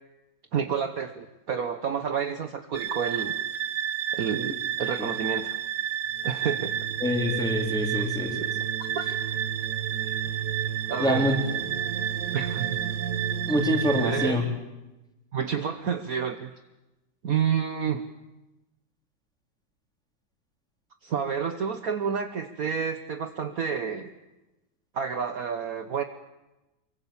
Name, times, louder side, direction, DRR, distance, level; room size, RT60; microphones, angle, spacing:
voice 1, 0.5-3.3 4.1-5.6 6.2-6.7 7.9-8.5 10.9-11.3 12.3-12.8 13.9-14.5 15.3-16.5 17.2-18.0 21.0-24.1 24.9-26.0, right 7 dB, 55° right, 7 dB, 1.4 m, -29 dB
sound 1, 2.7-14.3, right 9 dB, 70° right, 1.8 m, -30 dB
voice 2, 7.0-8.5 11.0-11.4 13.5-14.4, left 1 dB, ahead, 1 dB, 3.8 m, -26 dB
25.0 x 23.5 x 7.2 m, 1.0 s
omnidirectional pair, 1.9 m